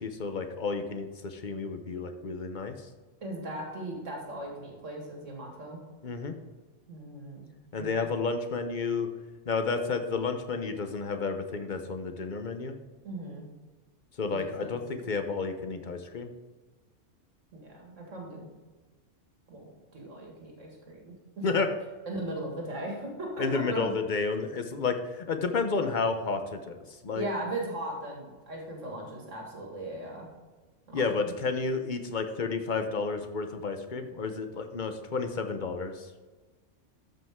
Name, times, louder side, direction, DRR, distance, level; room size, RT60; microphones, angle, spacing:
voice 1, 0.0-2.8 6.0-6.3 7.7-9.1 9.5-12.8 14.2-16.3 21.4-21.7 23.4-27.2 30.9-36.1, left 4 dB, 45° left, 7 dB, 0.9 m, -31 dB
voice 2, 3.2-5.8 6.9-7.5 7.8-8.1 13.0-13.5 14.3-14.8 17.5-18.5 19.5-21.5 22.0-23.9 27.1-30.3 30.9-31.3, right 1 dB, 80° right, 0 dB, 2.2 m, -38 dB
13.5 x 5.5 x 3.6 m, 1.3 s
omnidirectional pair, 1.3 m